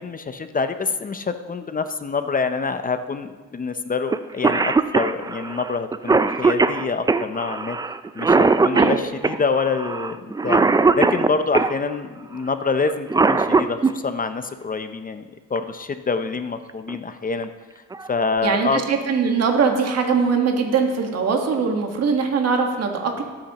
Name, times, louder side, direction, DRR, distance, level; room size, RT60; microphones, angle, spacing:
voice 1, 0.0-7.8 8.2-10.6 10.9-15.2 15.5-17.5 18.1-18.8, left 4 dB, 30° left, 9 dB, 0.6 m, -26 dB
Cough, 4.1-4.2 4.4-11.7 12.9-13.9 15.6-15.7 16.7-17.0 17.4-17.5 17.9-18.4, right 4 dB, 15° right, 0.4 m, -19 dB
voice 2, 18.4-23.2, right 5 dB, 55° right, 3 dB, 1.6 m, -21 dB
18.0 x 8.7 x 3.0 m, 1.3 s
cardioid pair, 90°, 30 cm